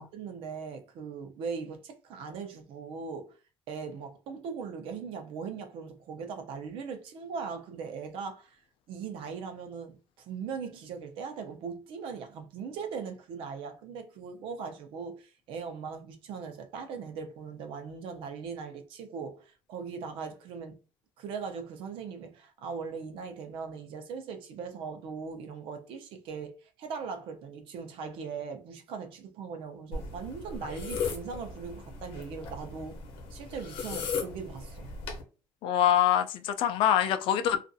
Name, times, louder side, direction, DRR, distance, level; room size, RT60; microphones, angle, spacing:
voice 1, 0.0-3.4 3.7-8.6 8.9-20.8 21.2-33.0 33.3-34.9, right 5 dB, 80° right, 0.6 m, -39 dB
sound 1, 29.9-35.2, left 5 dB, 90° left, 0.8 m, -37 dB
voice 2, 35.6-37.6, left 10 dB, 70° left, 0.4 m, -24 dB
2.4 x 2.3 x 2.6 m
cardioid pair, 145°, 9 cm